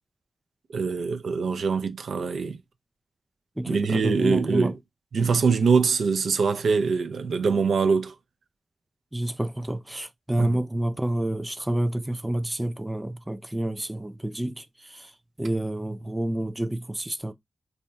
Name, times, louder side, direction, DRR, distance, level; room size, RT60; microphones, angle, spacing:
voice 1, 0.7-2.6 3.6-4.7 5.1-8.1 10.4-10.6, right 5 dB, 85° right, 0.5 m, -23 dB
voice 2, 3.6-4.7 9.1-15.1 15.4-17.3, right 1 dB, 10° right, 0.3 m, -29 dB
4.2 x 2.8 x 2.2 m
wide cardioid pair, 140°, 0 cm